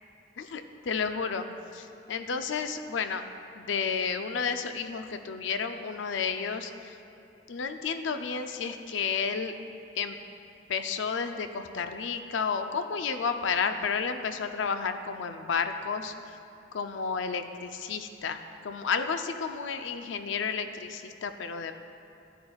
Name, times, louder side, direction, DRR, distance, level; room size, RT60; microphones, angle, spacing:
voice 1, 0.4-1.5 1.7-3.2 3.5-7.0 7.5-9.6 10.0-10.2 10.7-16.1 16.7-21.7, left 5 dB, 70° left, 8 dB, 0.5 m, -31 dB
11.0 x 10.5 x 2.4 m, 2.7 s
head